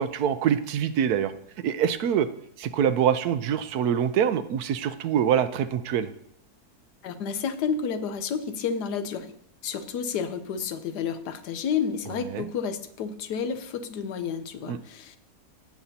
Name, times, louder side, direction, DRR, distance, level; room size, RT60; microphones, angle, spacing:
voice 1, 0.0-1.3 1.6-2.3 2.6-6.1 12.3-12.5 14.7-14.8, right 8 dB, 75° right, 12 dB, 1.0 m, -25 dB
voice 2, 7.0-9.3 9.6-15.2, left 6 dB, 80° left, 10 dB, 1.3 m, -30 dB
16.5 x 7.2 x 2.8 m, 0.69 s
omnidirectional pair, 1.7 m